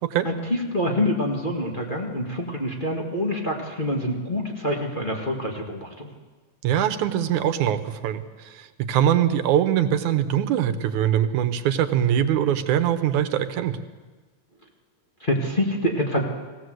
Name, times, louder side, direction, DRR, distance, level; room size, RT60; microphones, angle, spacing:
voice 1, 0.2-6.1 15.2-16.2, left 1 dB, 20° left, -1 dB, 1.9 m, -26 dB
voice 2, 6.6-13.8, right 10 dB, 90° right, 10 dB, 2.5 m, -22 dB
21.0 x 16.5 x 7.9 m, 1.3 s
omnidirectional pair, 3.3 m